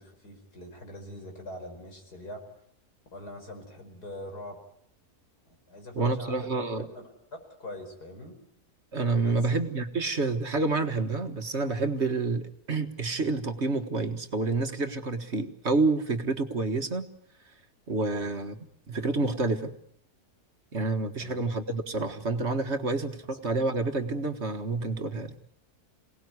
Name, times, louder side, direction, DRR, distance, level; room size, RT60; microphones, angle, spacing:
voice 1, 0.0-2.4 3.1-4.6 5.7-6.5 6.9-8.4 9.2-9.3 18.1-18.3 21.2-21.4 23.2-23.4, left 1 dB, 85° left, 4 dB, 5.7 m, -43 dB
voice 2, 6.0-6.9 8.9-17.1 17.9-18.6 18.9-19.7 20.7-25.4, right 3 dB, 45° right, 7 dB, 1.8 m, -28 dB
27.0 x 18.5 x 9.6 m, 0.70 s
omnidirectional pair, 1.6 m